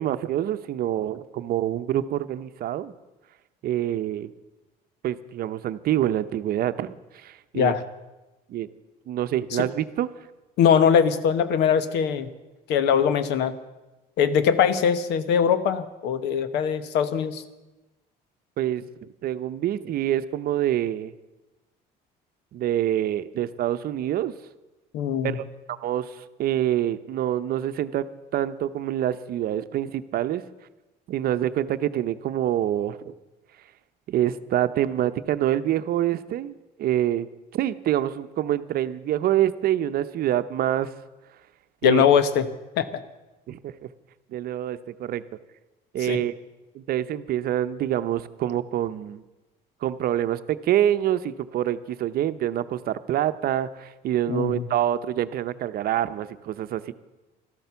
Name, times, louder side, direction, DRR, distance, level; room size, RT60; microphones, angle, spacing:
voice 1, 0.0-2.9 3.6-4.3 5.0-7.7 8.5-8.7 9.1-10.1 18.6-18.8 19.2-21.1 22.5-24.3 25.2-28.0 28.3-30.4 31.1-33.1 34.1-37.3 37.5-40.9 41.8-42.0 43.5-43.9 44.3-45.2 45.9-46.4 46.7-49.2 49.8-56.9, right 12 dB, 65° right, 12 dB, 0.7 m, -26 dB
voice 2, 10.6-12.3 12.7-13.5 14.2-17.4 24.9-25.4 41.8-42.5 42.8-43.0 46.0-46.2 54.3-54.7, left 7 dB, 85° left, 13 dB, 1.1 m, -21 dB
13.0 x 12.0 x 6.9 m, 1.1 s
cardioid pair, 110°, 17 cm